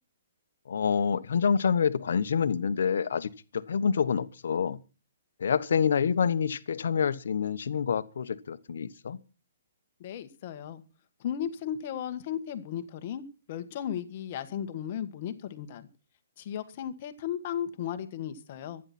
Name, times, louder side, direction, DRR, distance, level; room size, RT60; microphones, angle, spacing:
voice 1, 0.7-4.8 5.4-9.2, left 6 dB, 60° left, 1.2 m, -27 dB
voice 2, 10.0-10.8 11.2-15.9 16.4-18.8, left 9 dB, 30° left, 1.5 m, -35 dB
25.5 x 10.0 x 4.4 m
hypercardioid pair, 180°, 0 cm